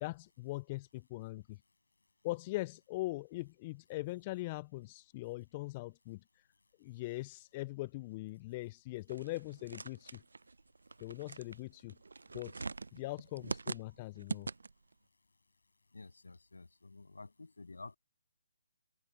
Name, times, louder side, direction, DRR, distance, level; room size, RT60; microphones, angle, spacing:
voice 1, 0.0-1.6 2.2-6.2 6.8-10.2 11.0-12.0 12.3-12.6 12.9-14.5, left 20 dB, 30° left, 0.3 m, -41 dB
sound 1, 9.1-14.9, right 3 dB, 80° right, 0.6 m, -44 dB
voice 2, 15.9-18.0, left 3 dB, 85° left, 7.8 m, -51 dB
figure-of-eight pair, 145°, 0 cm